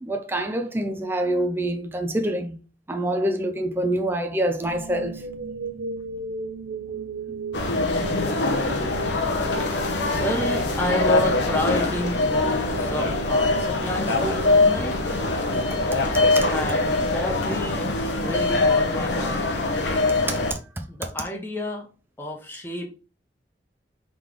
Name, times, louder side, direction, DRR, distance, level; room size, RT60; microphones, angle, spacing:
voice 1, 0.0-2.5 2.9-5.2 15.5-15.6 16.4-16.5 19.9-20.0 20.5-20.6, right 1 dB, 10° right, 0.5 m, -26 dB
sound 1, 4.6-16.7, right 3 dB, 75° right, 0.7 m, -37 dB
sound 2, 7.5-20.5, left 2 dB, 75° left, 0.9 m, -23 dB
voice 2, 10.1-15.0 16.5-17.9 18.2-19.5 20.9-21.9 22.2-22.9, left 1 dB, 10° left, 1.0 m, -30 dB
3.8 x 3.2 x 3.6 m
head